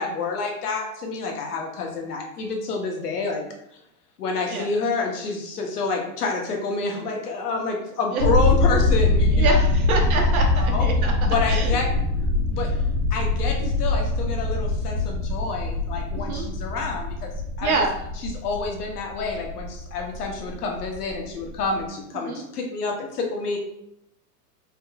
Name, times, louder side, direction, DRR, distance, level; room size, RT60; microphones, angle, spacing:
voice 1, 0.0-3.5 4.2-9.6 10.6-10.9 11.2-11.9 12.5-12.7 13.1-17.3 17.6-17.8 18.2-23.6, left 4 dB, 65° left, 1 dB, 1.2 m, -28 dB
sound 1, 8.2-21.8, left 2 dB, 25° right, 1.2 m, -23 dB
voice 2, 9.3-11.1 11.5-11.8 13.6-13.7 16.2-16.5 17.6-17.9 22.1-22.4, right 3 dB, 60° right, 2 dB, 1.0 m, -26 dB
4.2 x 3.7 x 2.4 m, 0.79 s
supercardioid pair, 175°, 49 cm